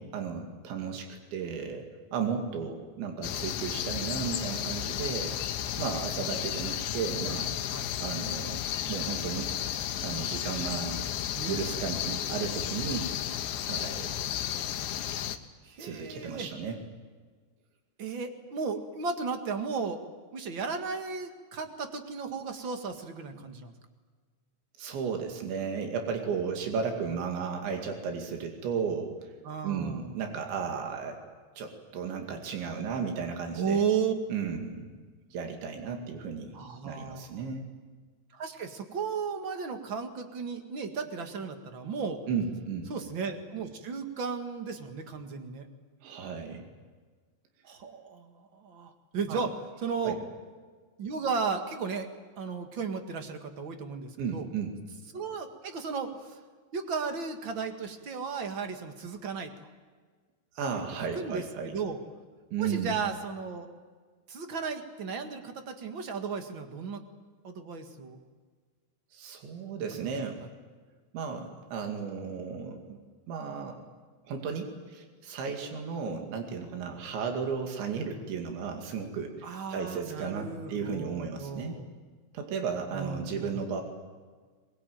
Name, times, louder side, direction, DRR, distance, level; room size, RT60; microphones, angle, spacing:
voice 1, 0.0-5.4 5.8-7.6 8.0-8.6 8.9-9.5 10.0-11.1 11.5-13.1 13.7-14.2 15.8-16.8 24.8-29.3 29.6-31.2 31.6-33.8 34.3-34.9 35.3-36.6 36.8-37.7 42.3-42.9 46.0-46.6 49.3-49.5 50.0-50.2 54.2-54.7 60.6-61.7 62.5-63.0 69.1-70.4 71.1-73.0 73.3-73.8 74.3-81.8 82.3-83.8, right 6 dB, 85° right, 3 dB, 4.8 m, -34 dB
sound 1, 3.2-15.4, left 11 dB, 85° left, 3.4 m, -33 dB
voice 2, 11.3-11.6 15.6-16.5 18.0-20.0 20.3-23.7 29.4-30.1 33.5-34.1 36.5-37.5 38.3-42.2 42.9-45.7 47.6-49.5 49.8-50.2 51.0-52.1 52.4-54.5 55.1-56.4 56.7-59.5 60.8-60.9 61.1-62.0 62.6-63.7 64.3-67.0 67.4-68.2 69.9-70.1 79.4-81.9 82.9-83.5, right 5 dB, 50° right, 6 dB, 1.5 m, -35 dB
23.0 x 22.0 x 9.2 m, 1.5 s
omnidirectional pair, 5.1 m